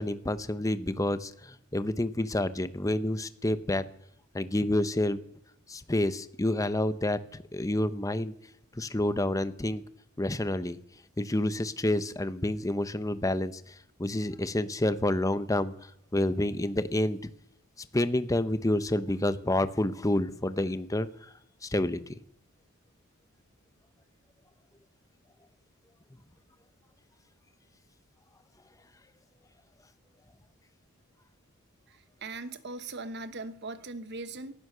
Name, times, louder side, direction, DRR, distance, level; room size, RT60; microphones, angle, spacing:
voice 1, 0.0-3.8 4.3-5.2 5.7-8.3 8.8-9.8 10.2-10.8 11.2-13.6 14.0-15.7 16.1-17.3 17.8-21.1 21.6-22.0, left 1 dB, 15° left, 13 dB, 0.8 m, -28 dB
voice 2, 31.9-34.5, right 3 dB, 55° right, 13 dB, 1.1 m, -40 dB
19.0 x 11.0 x 6.7 m, 0.71 s
head